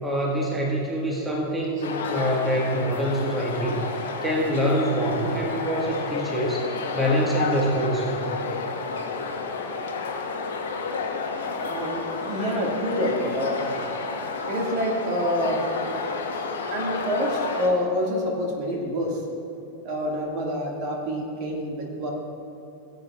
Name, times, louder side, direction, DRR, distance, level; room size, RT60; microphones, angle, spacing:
voice 1, 0.0-3.9 4.2-6.6 6.9-8.4, equal, 10° right, -3 dB, 1.4 m, -25 dB
sound 1, 1.8-17.7, left 4 dB, 60° left, 1.1 m, -31 dB
voice 2, 11.6-13.8 14.5-15.6 16.7-19.2 19.8-22.1, equal, 45° right, 0 dB, 1.8 m, -27 dB
18.0 x 8.0 x 2.3 m, 2.9 s
figure-of-eight pair, 90°, 0 cm